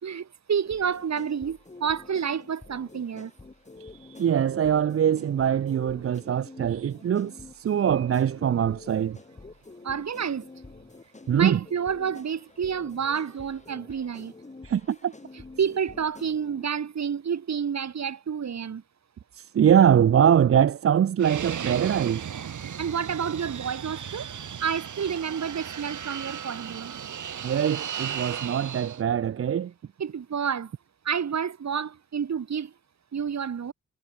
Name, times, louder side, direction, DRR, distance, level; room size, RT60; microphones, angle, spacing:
voice 1, 0.0-3.3 9.8-10.5 11.3-14.3 15.6-18.8 22.8-24.3 24.6-26.9 30.0-30.7 31.0-32.7 33.1-33.7, right 7 dB, 65° right, 2.3 m, -29 dB
sound 1, 0.7-16.7, left 3 dB, 25° left, 3.7 m, -48 dB
voice 2, 3.8-9.2 11.3-11.6 14.6-15.1 19.3-22.2 27.4-29.7, right 9 dB, 50° right, 0.5 m, -23 dB
Fixed-wing aircraft airplane, 21.2-29.0, right 8 dB, 85° right, 2.4 m, -36 dB
wide cardioid pair, 135°, 29 cm